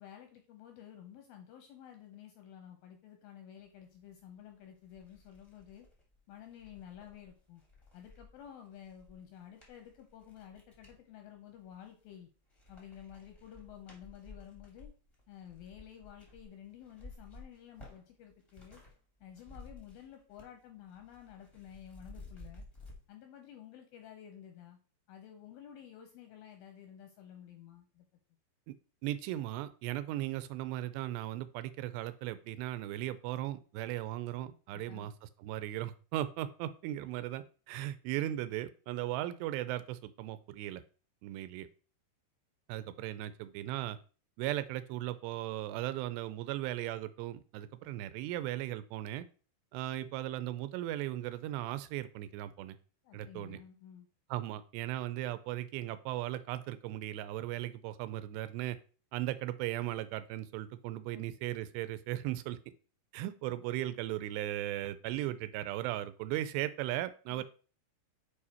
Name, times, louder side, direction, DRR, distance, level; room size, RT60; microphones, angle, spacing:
voice 1, 0.0-5.9 6.3-7.6 7.9-12.3 12.7-14.9 15.3-18.8 19.2-22.7 23.1-24.8 25.1-28.1 34.7-35.1 53.0-54.1 61.1-61.2 67.3-67.4, left 10 dB, 80° left, 5 dB, 2.1 m, -52 dB
sound 1, 4.3-4.4 4.8-11.0 11.6-12.2 12.5-18.9 19.2-20.6 20.9-23.0, left 3 dB, 35° left, 0.4 m, -55 dB
voice 2, 29.0-35.1 35.4-40.8 41.2-41.7 42.7-44.0 44.4-49.3 49.7-52.8 53.1-53.6 54.3-58.8 59.1-62.6 63.1-67.4, right 14 dB, 85° right, 13 dB, 2.7 m, -37 dB
6.7 x 4.8 x 4.3 m, 0.38 s
omnidirectional pair, 4.9 m